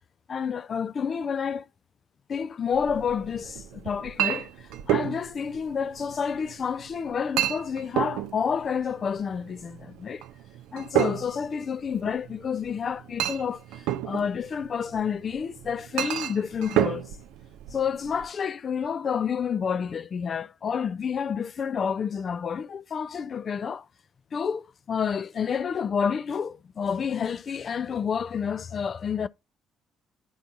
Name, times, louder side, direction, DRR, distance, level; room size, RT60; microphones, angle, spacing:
voice 1, 0.3-1.7 2.3-10.2 10.7-17.1 17.7-23.9 24.3-29.3, left 7 dB, 45° left, 0.3 m, -29 dB
Chink clink, 2.7-18.3, right 12 dB, 70° right, 0.4 m, -32 dB
11.0 x 4.5 x 2.5 m
hypercardioid pair, 45°, 0 cm